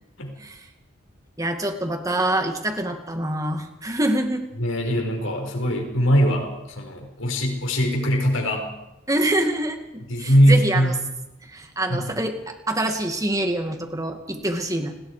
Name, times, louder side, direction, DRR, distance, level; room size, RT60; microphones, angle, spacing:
voice 1, 1.4-4.4 9.1-10.9 11.4-14.9, right 1 dB, 15° right, 5 dB, 2.3 m, -25 dB
voice 2, 4.6-8.6 10.1-10.9 11.9-12.1, equal, 75° left, 2 dB, 5.9 m, -21 dB
29.0 x 19.5 x 5.1 m, 0.93 s
head